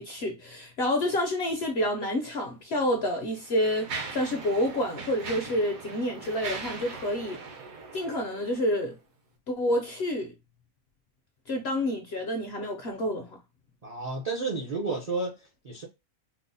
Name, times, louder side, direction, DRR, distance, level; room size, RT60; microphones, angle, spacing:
voice 1, 0.0-7.4 7.9-8.9 9.5-10.3 11.5-13.4, left 1 dB, 65° left, 0.6 m, -28 dB
Mechanisms, 2.2-2.4 3.1-8.9, right 4 dB, 70° right, 1.2 m, -40 dB
voice 2, 13.8-15.9, right 3 dB, 50° right, 0.4 m, -32 dB
4.5 x 2.0 x 2.6 m
omnidirectional pair, 1.6 m